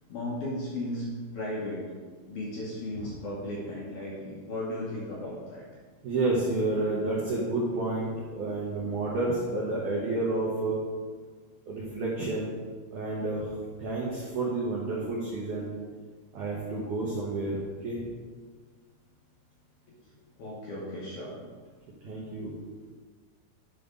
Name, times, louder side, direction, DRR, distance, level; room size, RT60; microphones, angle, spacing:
voice 1, 0.1-1.1 1.3-1.9 2.3-5.7 19.9-21.4, left 1 dB, 80° left, -5 dB, 1.8 m, -36 dB
voice 2, 6.0-10.8 11.7-12.5 12.9-15.7 16.3-18.0 22.0-22.5, right 2 dB, 85° right, -4 dB, 1.7 m, -30 dB
9.2 x 5.5 x 3.7 m, 1.5 s
omnidirectional pair, 5.1 m